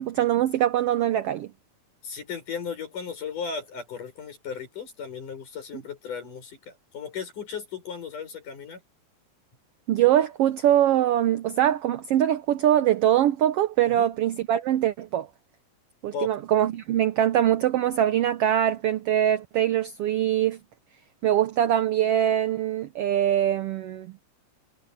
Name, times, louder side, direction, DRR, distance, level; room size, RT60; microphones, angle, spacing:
voice 1, 0.0-1.5 9.9-15.3 16.0-20.6 21.2-24.1, right 11 dB, 85° right, 1.3 m, -23 dB
voice 2, 2.0-6.6 6.9-8.8 13.9-14.1 16.1-16.3, left 6 dB, 80° left, 8.5 m, -35 dB
omnidirectional pair, 3.6 m